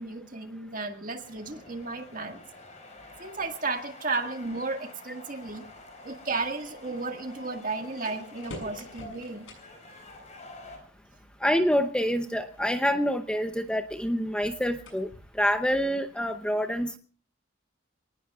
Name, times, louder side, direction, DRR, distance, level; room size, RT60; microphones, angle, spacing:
voice 1, 0.0-2.4 3.2-5.6 6.0-9.5, right 3 dB, 45° right, 5 dB, 1.9 m, -34 dB
sound 1, 1.2-10.8, left 2 dB, 35° left, 5.2 m, -49 dB
sound 2, 5.4-16.3, left 1 dB, 85° left, 7.0 m, -51 dB
voice 2, 11.4-15.1 15.3-17.0, equal, 5° left, 7 dB, 0.7 m, -26 dB
28.5 x 19.0 x 2.4 m, 0.42 s
head